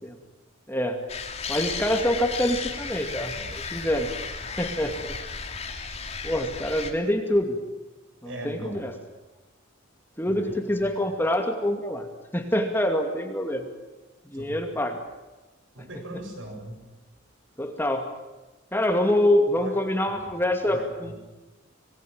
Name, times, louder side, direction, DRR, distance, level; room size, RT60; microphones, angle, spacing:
voice 1, 0.7-1.0 1.5-4.1 4.6-5.2 6.2-7.6 8.2-8.9 10.2-12.1 12.3-13.7 14.3-15.0 17.6-18.1 18.7-21.1, left 1 dB, 10° left, 4 dB, 2.4 m, -25 dB
sound 1, 1.1-6.9, left 5 dB, 30° left, 2.7 m, -34 dB
voice 2, 8.2-8.8 10.3-10.9 14.3-14.6 15.7-16.8 19.5-19.7 20.1-20.2 20.7-21.1, right 1 dB, 65° right, 3 dB, 7.9 m, -39 dB
27.0 x 19.5 x 8.9 m, 1.1 s
head